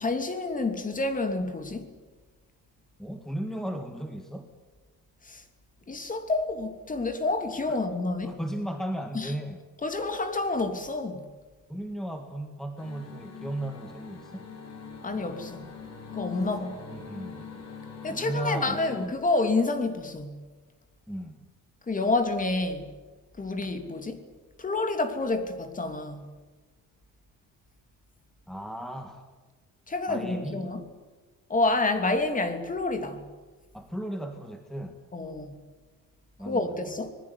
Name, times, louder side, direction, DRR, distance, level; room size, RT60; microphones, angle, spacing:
voice 1, 0.0-1.9 5.2-5.4 5.9-8.4 9.1-9.4 9.8-11.2 15.0-15.7 16.1-16.8 18.0-20.4 21.9-22.9 23.4-24.3 24.6-26.3 29.9-30.8 31.5-33.2 35.1-35.6 36.5-37.1, left 2 dB, 25° left, 3.0 m, -28 dB
voice 2, 3.0-4.5 8.2-9.6 11.7-14.5 16.9-17.7 18.1-19.1 21.1-21.4 28.5-29.2 30.1-30.6 33.7-35.0 36.4-36.9, right 1 dB, ahead, 1.9 m, -36 dB
sound 1, 12.8-19.1, left 6 dB, 50° left, 7.2 m, -43 dB
26.0 x 20.0 x 9.8 m
cardioid pair, 145°, 35 cm